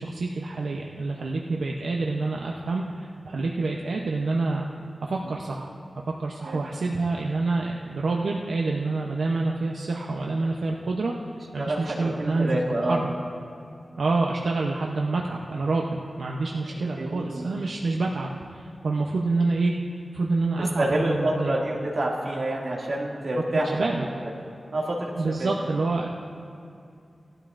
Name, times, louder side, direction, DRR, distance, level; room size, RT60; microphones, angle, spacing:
voice 1, 0.0-4.7 5.0-5.7 6.2-11.1 11.5-13.1 14.0-19.7 20.1-21.6 23.7-24.1 25.2-26.3, right 3 dB, 90° right, -1 dB, 0.7 m, -27 dB
voice 2, 11.6-13.0 17.0-17.5 20.8-23.9 24.2-24.3 24.7-25.1 25.4-25.5, right 1 dB, 60° right, -3 dB, 2.3 m, -27 dB
19.0 x 12.0 x 2.5 m, 2.5 s
wide cardioid pair, 100°, 0 cm